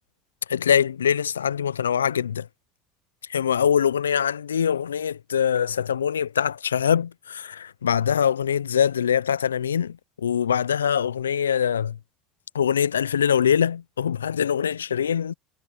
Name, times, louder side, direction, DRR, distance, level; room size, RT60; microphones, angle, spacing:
voice 1, 0.5-2.5 3.3-12.0 12.5-15.3, left 8 dB, 85° left, 0.6 m, -23 dB
hypercardioid pair, 70°, 0 cm